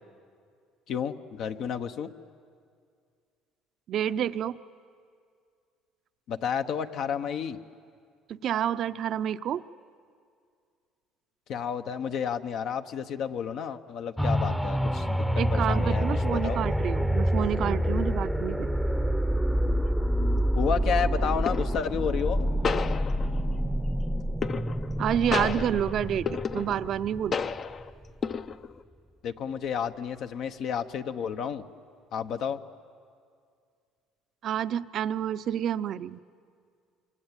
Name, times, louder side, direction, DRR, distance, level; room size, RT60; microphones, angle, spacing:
voice 1, 0.9-2.1 6.3-7.6 11.5-16.6 20.5-22.5 29.2-31.6 32.1-32.6, left 7 dB, 60° left, 8 dB, 0.9 m, -31 dB
voice 2, 3.9-4.6 8.3-9.6 15.4-18.7 25.0-27.4 34.4-36.2, right 10 dB, 50° right, 13 dB, 0.6 m, -29 dB
sound 1, 14.2-27.8 28.3-28.4, equal, 5° left, 0.8 m, -27 dB
sound 2, 19.9-20.1 21.5-21.9 22.6-23.6 24.4-25.0 25.3-27.0 27.3-27.9 28.2-28.8, left 6 dB, 35° left, 0.6 m, -32 dB
26.5 x 24.0 x 9.0 m, 2.2 s
cardioid pair, 125°, 0 cm